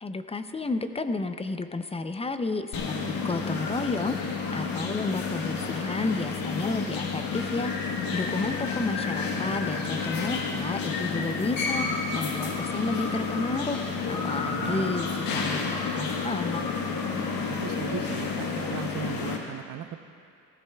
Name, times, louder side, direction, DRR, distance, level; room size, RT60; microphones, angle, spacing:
voice 1, 0.0-7.7 8.1-13.8 14.1-16.6, left 3 dB, 15° left, 9 dB, 0.5 m, -32 dB
sound 1, 2.7-19.4, left 4 dB, 75° left, 1.4 m, -30 dB
voice 2, 14.5-15.0 17.5-20.0, right 10 dB, 65° right, 9 dB, 0.7 m, -38 dB
15.5 x 14.5 x 2.3 m, 2.5 s
cardioid pair, 90°, 35 cm